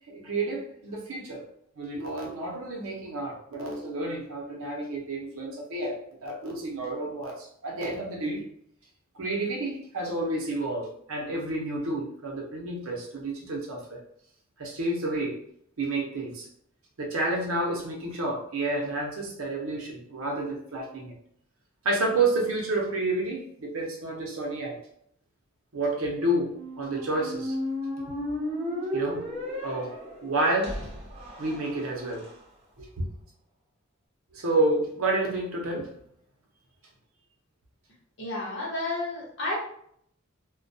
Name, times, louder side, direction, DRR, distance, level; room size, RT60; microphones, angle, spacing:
voice 1, 0.1-1.5 1.8-8.4 9.1-14.0 14.6-15.4 15.8-16.5 17.0-21.1 21.8-24.8 25.7-27.6 28.9-29.2 29.6-30.9 31.4-32.3 32.8-33.1 34.3-35.9, right 2 dB, 80° right, 0 dB, 0.7 m, -30 dB
Squeak, 26.3-32.3, equal, 30° right, 0.7 m, -34 dB
voice 2, 38.2-39.6, left 2 dB, 60° left, -4 dB, 0.9 m, -31 dB
2.2 x 2.2 x 2.6 m, 0.67 s
head